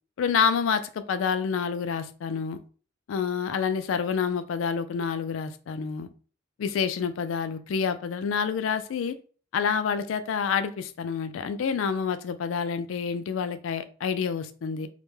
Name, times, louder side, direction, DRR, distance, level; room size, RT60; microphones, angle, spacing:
voice 1, 0.2-2.6 3.1-6.1 6.6-9.2 9.5-14.9, left 6 dB, 80° left, 0.3 m, -28 dB
2.2 x 2.1 x 3.1 m
head